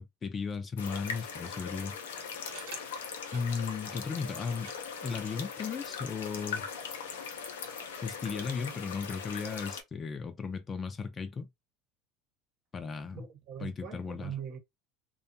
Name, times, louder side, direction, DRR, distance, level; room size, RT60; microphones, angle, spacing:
voice 1, 0.0-2.2 3.3-4.7 5.0-6.7 8.0-11.5 12.7-13.2 13.6-14.3, left 5 dB, 30° left, 0.5 m, -36 dB
sound 1, 0.8-9.8, left 6 dB, 85° left, 0.5 m, -40 dB
sound 2, 2.1-9.4, right 6 dB, 80° right, 0.8 m, -56 dB
voice 2, 13.1-14.6, right 9 dB, 55° right, 0.9 m, -41 dB
2.6 x 2.3 x 2.6 m
hypercardioid pair, 85°, 0 cm